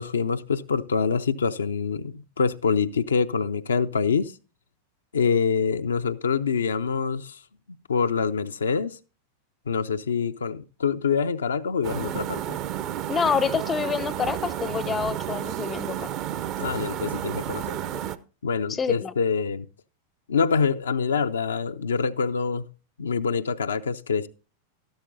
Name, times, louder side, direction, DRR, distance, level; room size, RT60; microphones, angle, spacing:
voice 1, 0.0-4.4 5.1-7.4 7.9-9.0 9.7-12.6 16.6-17.8 18.4-19.7 20.3-22.7 23.0-24.3, left 5 dB, 70° left, 0.4 m, -25 dB
sound 1, 11.8-18.2, right 10 dB, 40° right, 0.6 m, -31 dB
voice 2, 13.1-16.1 18.7-19.1, left 6 dB, 20° left, 0.5 m, -27 dB
12.5 x 12.0 x 2.6 m
figure-of-eight pair, 90°, 0 cm